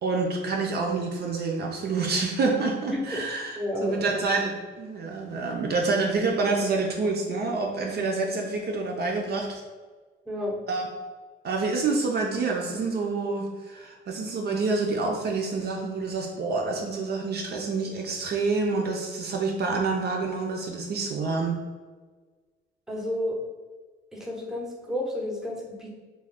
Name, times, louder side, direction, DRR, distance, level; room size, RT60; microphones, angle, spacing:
voice 1, 0.0-9.6 10.7-10.9 11.4-21.6, right 3 dB, 55° right, 1 dB, 0.5 m, -27 dB
voice 2, 2.9-3.2 3.6-4.3 10.3-10.6 19.7-19.9 22.9-23.4 24.1-25.9, left 1 dB, ahead, -3 dB, 0.7 m, -31 dB
2.4 x 2.3 x 3.4 m, 1.4 s
cardioid pair, 90°, 20 cm